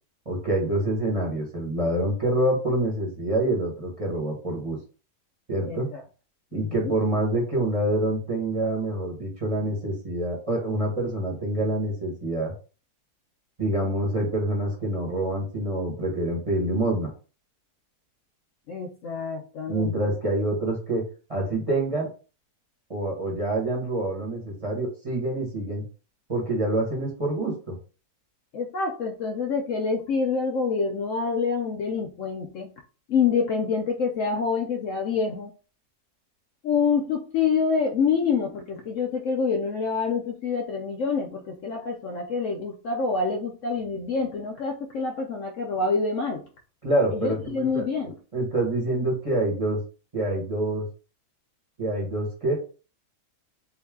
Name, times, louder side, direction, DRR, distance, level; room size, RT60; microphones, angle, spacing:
voice 1, 0.2-4.8 5.5-5.9 6.5-12.5 13.6-17.1 19.7-21.0 21.3-22.1 22.9-25.8 26.3-27.7 46.8-47.8 48.3-49.8 50.1-50.9 51.8-52.6, right 1 dB, 25° right, -3 dB, 1.1 m, -26 dB
voice 2, 5.6-6.0 6.5-6.9 18.7-20.0 28.5-32.7 33.1-35.5 36.6-46.4 47.1-48.1, left 5 dB, 65° left, 3 dB, 0.8 m, -26 dB
3.2 x 2.7 x 3.5 m, 0.35 s
omnidirectional pair, 1.6 m